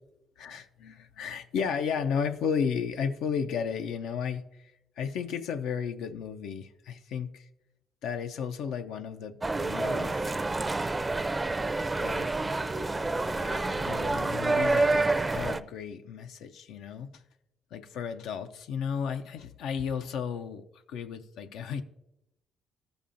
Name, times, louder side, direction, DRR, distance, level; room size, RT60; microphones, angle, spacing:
voice 1, 0.4-4.7 5.0-7.5 8.0-10.4 11.9-12.3 13.3-17.2 17.7-21.8, left 7 dB, 85° left, 8 dB, 0.4 m, -34 dB
sound 1, 9.4-15.6, right 3 dB, 20° right, 0.4 m, -28 dB
14.0 x 6.9 x 2.5 m, 0.89 s
cardioid pair, 90°, 0 cm